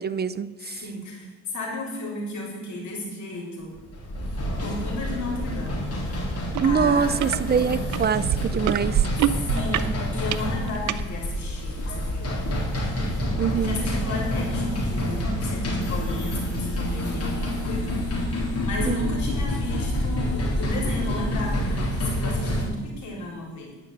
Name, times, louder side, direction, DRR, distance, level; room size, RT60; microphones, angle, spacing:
voice 1, 0.0-0.8 6.6-9.1 13.4-13.8 18.9-19.2, right 7 dB, 35° right, 14 dB, 0.5 m, -24 dB
voice 2, 0.6-3.7 4.6-5.9 6.6-7.2 9.3-12.5 13.6-18.1 18.6-23.7, left 2 dB, 70° left, -3 dB, 4.1 m, -34 dB
sound 1, 3.8-22.6, left 1 dB, 50° left, 3.7 m, -27 dB
sound 2, 6.5-6.7 7.0-7.4 7.9-11.0 11.7-11.8, right 14 dB, 75° right, 0.6 m, -25 dB
11.0 x 5.9 x 7.9 m, 1.2 s
cardioid pair, 90°, 30 cm